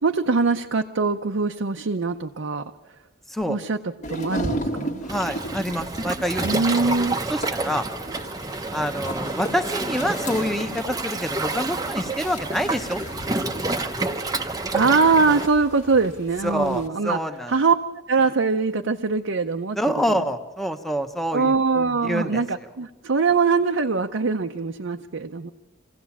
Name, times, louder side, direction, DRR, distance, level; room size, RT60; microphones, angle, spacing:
voice 1, 0.0-2.6 3.5-3.8 4.1-5.0 6.4-7.2 14.7-17.2 17.5-17.8 18.1-19.8 21.3-25.5, right 4 dB, 75° right, 4 dB, 0.7 m, -22 dB
sound 1, 4.0-16.9, equal, 40° left, 1.6 m, -36 dB
voice 2, 5.0-6.6 6.8-7.0 7.3-7.9 8.7-13.6 16.4-17.5 19.8-21.5 22.0-22.4, equal, ahead, 7 dB, 1.0 m, -27 dB
Waves surf, 5.1-15.5, right 2 dB, 20° right, 0.7 m, -29 dB
25.0 x 16.0 x 7.3 m, 1.1 s
head